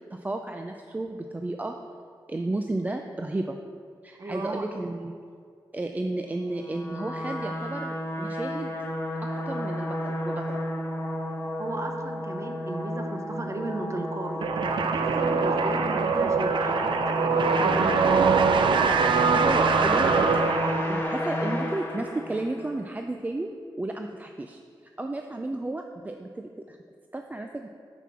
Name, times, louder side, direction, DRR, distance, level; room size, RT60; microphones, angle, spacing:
voice 1, 0.1-1.8 2.3-3.6 4.0-5.2 5.7-8.8 9.2-10.6 19.3-24.6 25.0-26.8 27.1-27.7, right 2 dB, 20° right, 4 dB, 0.4 m, -33 dB
voice 2, 4.2-4.6 11.6-18.3, right 2 dB, 35° right, 4 dB, 0.9 m, -36 dB
sound 1, 6.5-22.8, left 1 dB, 30° left, 1.2 m, -32 dB
sound 2, 14.4-21.2, right 5 dB, 75° right, 0.5 m, -23 dB
5.9 x 5.6 x 6.0 m, 2.3 s
wide cardioid pair, 85°, 8 cm